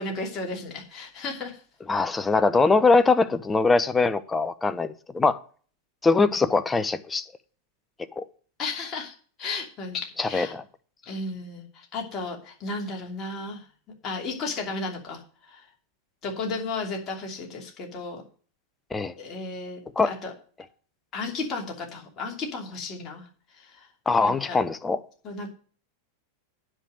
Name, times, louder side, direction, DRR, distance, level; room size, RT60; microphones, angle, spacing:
voice 1, 0.0-1.6 8.6-10.5 11.0-13.6 14.0-15.6 16.2-18.2 19.1-20.3 21.1-23.3 23.5-23.9 24.2-24.6 25.2-25.5, left 3 dB, 30° left, 2.8 m, -34 dB
voice 2, 1.9-5.4 6.0-7.2 8.2-8.3 10.2-10.6 18.9-19.1 20.0-20.1 24.1-25.0, left 3 dB, 10° left, 0.8 m, -22 dB
10.0 x 5.3 x 7.9 m
figure-of-eight pair, 90°, 0 cm